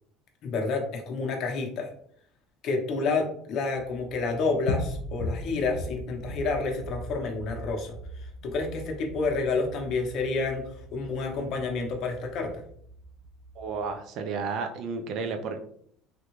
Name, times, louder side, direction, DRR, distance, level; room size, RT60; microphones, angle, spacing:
voice 1, 0.4-1.9 2.6-7.9 8.4-10.6 10.9-12.6, left 3 dB, 50° left, 2 dB, 0.8 m, -29 dB
sound 1, 4.1-13.9, left 1 dB, 90° left, 0.4 m, -39 dB
voice 2, 13.6-15.6, right 4 dB, 55° right, 6 dB, 0.4 m, -32 dB
3.4 x 2.3 x 3.0 m, 0.63 s
cardioid pair, 140°, 0 cm